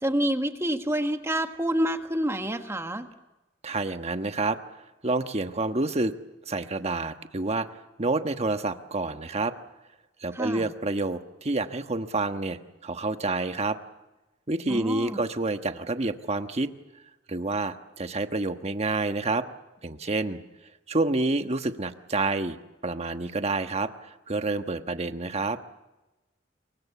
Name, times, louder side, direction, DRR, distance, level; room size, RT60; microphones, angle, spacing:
voice 1, 0.0-3.1 10.3-10.7 14.7-15.2, right 1 dB, 15° right, 7 dB, 1.5 m, -28 dB
voice 2, 3.6-4.6 5.0-6.1 6.5-7.7 8.0-9.5 10.2-13.8 14.5-16.7 17.3-19.4 19.8-20.4 20.9-22.6 22.8-23.9 24.3-25.6, right 2 dB, 35° right, 8 dB, 1.3 m, -28 dB
27.5 x 24.0 x 7.0 m, 1.0 s
head